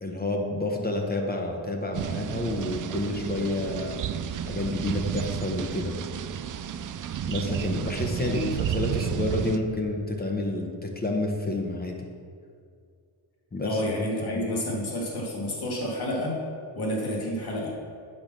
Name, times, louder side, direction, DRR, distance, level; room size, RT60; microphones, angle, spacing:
voice 1, 0.0-4.0 4.4-6.0 7.3-12.1 13.5-13.8 14.2-14.4, left 2 dB, 20° left, 2 dB, 0.9 m, -29 dB
sound 1, 1.9-9.6, right 9 dB, 45° right, 0.4 m, -32 dB
voice 2, 8.2-8.5 13.6-16.4 16.7-17.7, left 1 dB, 55° left, -2 dB, 2.3 m, -29 dB
8.9 x 5.2 x 6.1 m, 2.2 s
wide cardioid pair, 140°, 46 cm